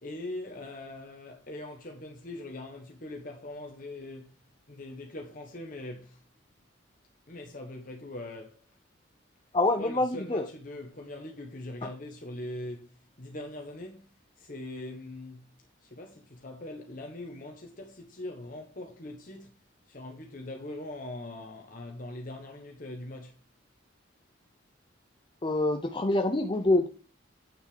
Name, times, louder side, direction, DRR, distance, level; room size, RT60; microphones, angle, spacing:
voice 1, 0.0-4.4 4.7-6.2 7.3-8.7 9.8-15.5 15.8-19.6 19.9-23.4, left 1 dB, 40° left, 1.2 m, -42 dB
voice 2, 9.5-10.4 11.8-11.9 25.4-26.9, left 2 dB, 25° left, 0.7 m, -26 dB
8.9 x 6.3 x 5.0 m
head